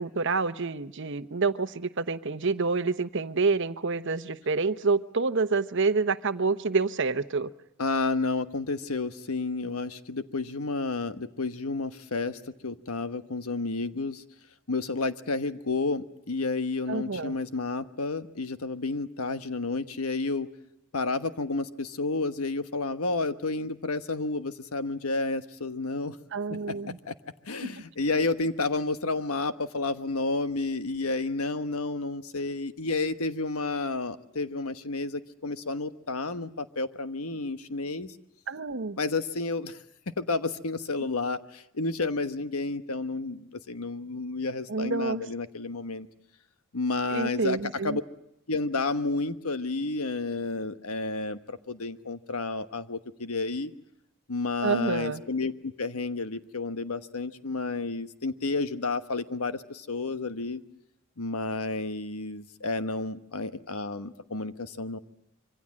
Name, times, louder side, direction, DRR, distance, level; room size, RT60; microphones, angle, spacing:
voice 1, 0.0-7.5 16.9-17.3 26.3-27.0 27.7-27.8 38.5-39.0 44.7-45.2 47.1-48.0 54.6-55.2, right 4 dB, 55° right, 12 dB, 0.9 m, -28 dB
voice 2, 7.8-14.2 14.7-20.5 20.9-26.2 27.1-27.2 27.5-38.1 39.0-39.8 40.2-46.1 46.7-47.6 47.8-48.0 48.5-53.7 54.3-60.6 61.2-65.0, left 3 dB, 85° left, 11 dB, 1.2 m, -31 dB
26.0 x 24.5 x 7.6 m, 0.79 s
head